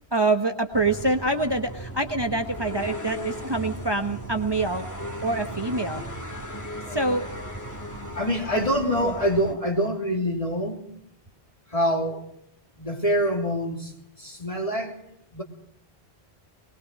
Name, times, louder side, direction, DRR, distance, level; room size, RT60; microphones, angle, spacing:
voice 1, 0.1-4.9 5.2-6.0 6.9-7.3 8.9-9.1, right 2 dB, 25° right, 1.2 m, -25 dB
sound 1, 0.7-9.5, equal, 15° left, 2.4 m, -36 dB
voice 2, 8.1-10.8 11.7-12.3 12.7-13.9 14.2-15.0 15.3-15.4, equal, 35° left, 3.1 m, -25 dB
21.0 x 21.0 x 6.5 m
omnidirectional pair, 1.1 m